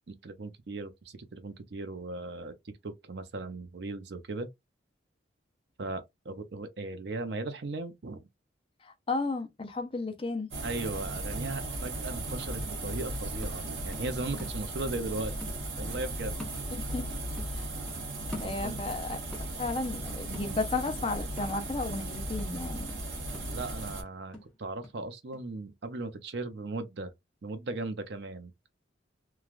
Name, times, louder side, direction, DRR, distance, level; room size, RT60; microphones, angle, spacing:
voice 1, 0.1-4.5 5.8-8.2 10.6-16.4 18.6-18.8 23.5-27.1 27.4-28.5, right 2 dB, 60° right, 0.6 m, -37 dB
voice 2, 8.8-10.5 16.8-17.0 17.5-17.7 18.4-22.9, left 3 dB, 30° left, 0.5 m, -34 dB
sound 1, 10.5-24.0, right 1 dB, 85° right, 1.2 m, -36 dB
sound 2, 11.9-15.1 15.4-17.1 17.4-19.0 19.3-25.0 25.3-25.4, left 1 dB, 5° left, 0.9 m, -48 dB
3.1 x 2.3 x 2.4 m
head